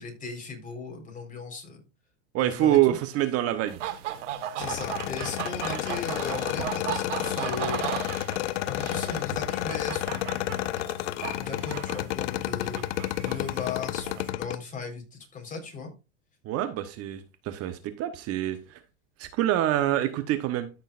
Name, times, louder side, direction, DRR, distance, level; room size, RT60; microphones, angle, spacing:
voice 1, 0.0-1.8 2.4-3.0 4.6-7.8 8.7-10.7 11.3-12.8 13.2-15.9, left 5 dB, 20° left, 4.1 m, -37 dB
voice 2, 2.3-3.8 16.4-18.8 19.2-20.7, right 13 dB, 40° right, 1.0 m, -26 dB
sound 1, 3.7-14.3, right 11 dB, 75° right, 1.6 m, -36 dB
sound 2, 4.6-14.6, left 15 dB, 70° left, 0.7 m, -31 dB
13.5 x 6.5 x 2.5 m
hypercardioid pair, 120°, 36 cm